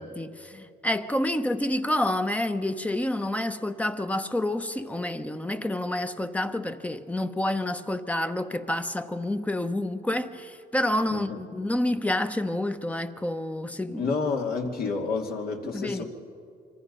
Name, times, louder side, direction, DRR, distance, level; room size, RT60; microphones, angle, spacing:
voice 1, 0.0-14.1 15.6-16.0, left 1 dB, 10° left, 1.0 m, -28 dB
voice 2, 11.1-11.4 14.0-16.1, left 4 dB, 65° left, 2.8 m, -29 dB
26.0 x 25.0 x 5.5 m
cardioid pair, 110°, 17 cm